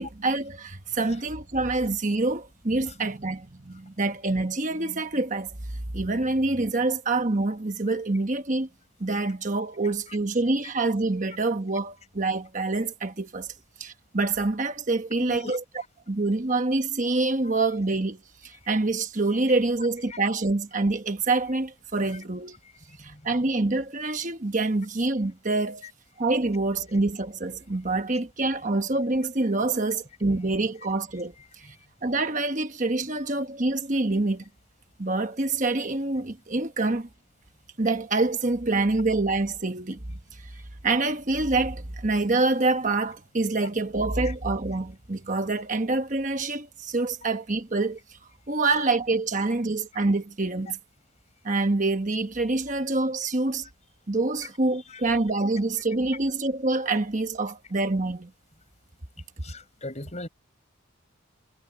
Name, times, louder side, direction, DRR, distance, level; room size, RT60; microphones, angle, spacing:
voice 1, 0.0-5.5 5.9-8.7 9.0-13.5 13.8-15.6 16.1-18.2 18.4-22.6 23.0-25.9 26.2-31.3 32.0-34.4 35.0-37.1 37.8-40.0 40.3-40.4 40.8-48.0 48.5-50.8 51.4-53.7 54.1-58.3, right 2 dB, 35° right, 1.2 m, -26 dB
voice 2, 15.3-15.9 20.1-20.2 22.9-23.3 25.8-25.9 31.6-31.7 38.8-38.9 44.2-44.3 47.2-47.3 54.4-54.5 54.9-55.0 59.4-60.3, left 2 dB, 35° left, 4.6 m, -40 dB
head